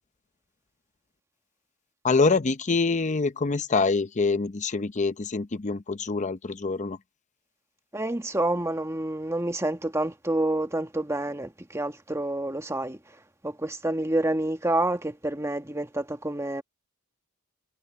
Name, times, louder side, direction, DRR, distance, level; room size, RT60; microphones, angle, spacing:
voice 1, 2.0-7.0, left 4 dB, 35° left, 0.6 m, -25 dB
voice 2, 7.9-13.0 13.4-16.6, right 1 dB, 15° right, 1.5 m, -28 dB
head